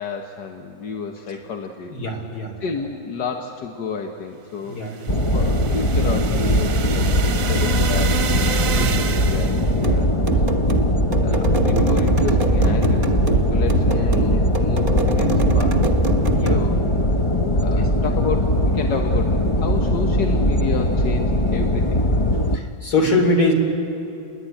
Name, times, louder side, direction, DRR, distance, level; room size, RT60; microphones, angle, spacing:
voice 1, 0.0-1.9 2.6-4.8 5.3-8.4 8.7-10.4 11.2-13.1 13.5-15.9 16.2-22.0, left 5 dB, 85° left, 3 dB, 1.8 m, -31 dB
voice 2, 1.9-2.5 4.6-5.1 8.6-9.1 11.1-11.4 14.0-14.1 16.3-16.6 17.7-17.9 22.5-23.5, left 2 dB, 65° left, 2 dB, 4.0 m, -23 dB
sound 1, 4.8-9.8, right 7 dB, 60° right, 1.2 m, -29 dB
sound 2, 5.1-22.6, left 1 dB, 30° left, 0.5 m, -20 dB
sound 3, 9.8-16.7, right 3 dB, 30° right, 1.5 m, -24 dB
29.0 x 21.5 x 9.1 m, 2.7 s
omnidirectional pair, 1.8 m